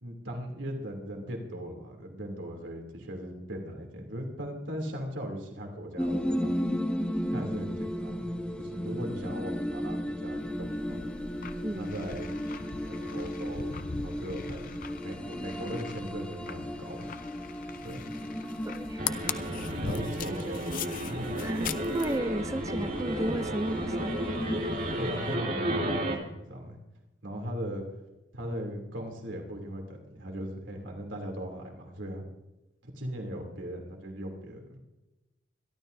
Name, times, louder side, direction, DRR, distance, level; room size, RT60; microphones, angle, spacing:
voice 1, 0.0-6.6 7.3-11.0 11.8-12.3 12.8-17.1 17.8-18.1 19.7-21.4 24.9-26.8 27.2-27.8 28.3-32.2 32.8-34.8, equal, 85° right, 2 dB, 2.9 m, -39 dB
sound 1, 6.0-25.3, equal, 5° left, 1.0 m, -35 dB
sound 2, 10.4-22.2, left 6 dB, 45° left, 0.6 m, -41 dB
voice 2, 18.7-19.0 21.4-24.1, right 1 dB, 15° right, 13 dB, 0.4 m, -33 dB
sound 3, 19.0-26.2, right 1 dB, 45° right, 2.5 m, -33 dB
26.5 x 12.0 x 2.7 m, 1.0 s
head